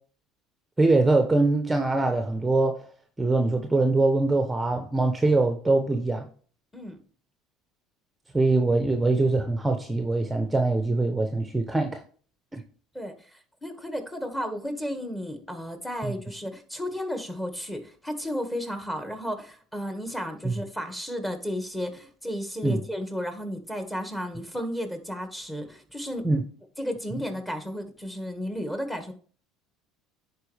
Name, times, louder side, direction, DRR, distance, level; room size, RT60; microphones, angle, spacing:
voice 1, 0.8-2.8 3.2-6.3 8.3-12.0 12.5-12.6 16.0-16.1 20.4-20.5 22.6-22.8 26.2-26.4, right 2 dB, 10° right, 1.0 m, -23 dB
voice 2, 12.9-26.2 26.8-29.1, equal, 10° left, 2.0 m, -33 dB
10.0 x 4.7 x 3.5 m
hypercardioid pair, 80°, 0 cm